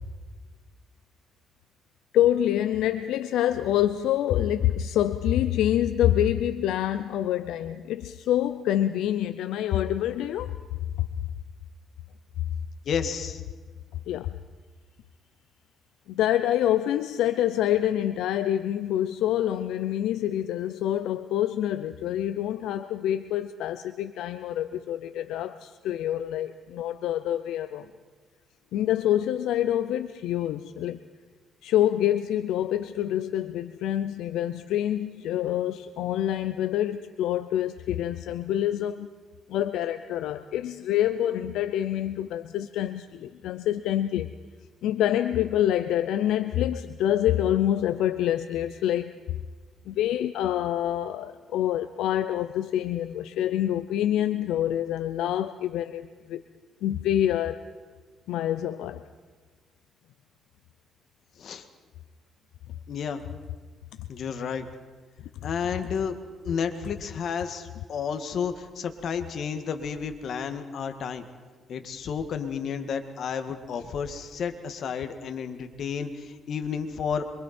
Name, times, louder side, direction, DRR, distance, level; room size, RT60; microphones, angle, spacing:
voice 1, 2.1-10.6 14.1-14.3 16.1-27.9 28.7-31.0 31.6-39.1 39.5-44.3 44.8-49.1 49.9-56.4 56.8-57.6 58.3-59.0, left 11 dB, 90° left, 11 dB, 0.6 m, -26 dB
voice 2, 12.9-13.4 61.4-61.7 62.9-63.2 64.1-64.7 65.4-66.2 66.4-71.3 71.7-77.2, left 6 dB, 65° left, 7 dB, 1.9 m, -31 dB
26.0 x 24.0 x 4.4 m, 1.4 s
cardioid pair, 90°, 0 cm